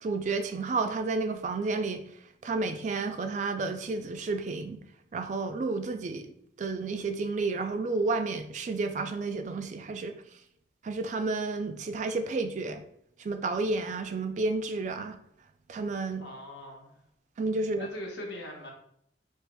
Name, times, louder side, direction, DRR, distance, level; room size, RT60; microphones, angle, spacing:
voice 1, 0.0-2.0 2.4-4.8 5.1-6.3 6.6-10.2 10.8-12.8 13.2-15.1 15.7-16.2 17.4-17.9, right 3 dB, 40° right, 8 dB, 0.3 m, -31 dB
voice 2, 16.2-16.9 17.8-18.7, equal, 75° left, 0 dB, 0.9 m, -40 dB
4.7 x 2.9 x 2.2 m, 0.72 s
head